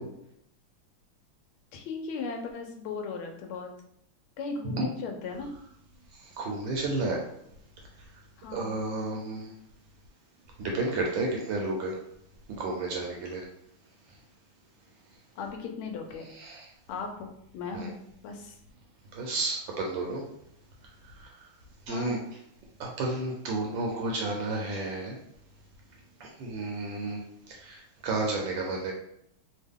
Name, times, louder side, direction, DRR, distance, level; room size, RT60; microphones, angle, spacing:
voice 1, 1.7-3.7 4.4-5.5 8.4-8.8 15.4-16.3 16.9-18.6 21.9-22.3, left 4 dB, 80° left, 3 dB, 1.4 m, -37 dB
voice 2, 6.4-7.2 8.5-9.5 10.6-11.9 12.6-13.4 16.4-16.6 17.8-17.9 19.1-20.2 21.9-22.2 22.8-25.1 26.2-27.2 27.6-28.9, right 2 dB, 75° right, 0 dB, 1.2 m, -31 dB
3.6 x 2.2 x 3.5 m, 0.75 s
omnidirectional pair, 2.4 m